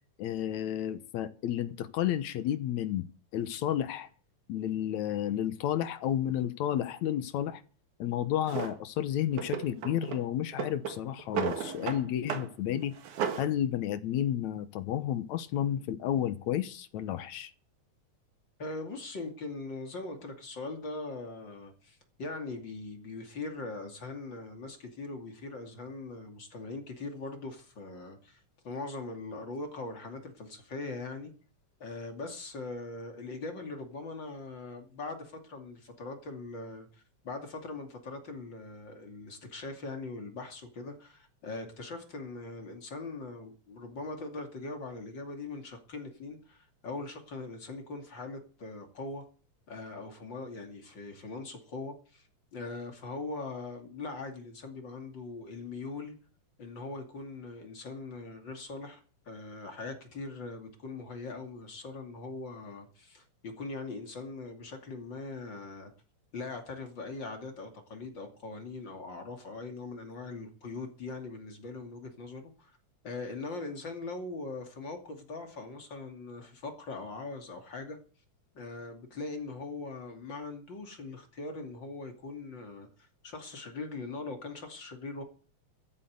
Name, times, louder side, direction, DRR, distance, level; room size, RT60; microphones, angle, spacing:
voice 1, 0.2-3.1 3.3-4.1 4.5-7.6 8.0-12.9 13.4-17.5, left 11 dB, 75° left, 2.4 m, -31 dB
Drawer open or close, 8.5-8.8 9.3-10.2 10.5-12.0 12.3-12.5 12.8-13.5, right 7 dB, 85° right, 3.1 m, -34 dB
voice 2, 18.6-31.3 31.8-49.2 49.7-56.2 56.6-59.0 59.3-65.9 66.3-72.8 73.0-78.0 78.5-85.2, left 3 dB, 40° left, 3.0 m, -41 dB
14.0 x 8.6 x 8.0 m
omnidirectional pair, 3.4 m